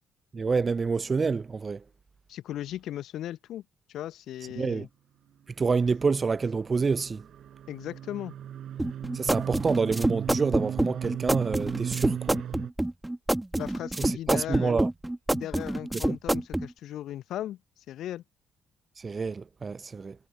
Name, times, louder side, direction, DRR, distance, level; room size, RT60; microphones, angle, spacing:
voice 1, 0.3-1.8 4.6-4.9 5.6-7.2 9.1-12.4 14.0-14.9 19.0-20.1, right 4 dB, 35° right, 0.9 m, -27 dB
voice 2, 2.3-3.6 3.9-4.9 7.7-8.3 13.6-14.7 15.3-17.6 17.9-18.2, left 12 dB, 60° left, 1.2 m, -37 dB
sound 1, 5.7-12.7, right 10 dB, 55° right, 5.7 m, -37 dB
sound 2, 8.8-16.7, right 1 dB, 10° right, 2.6 m, -27 dB
figure-of-eight pair, 40°, 0 cm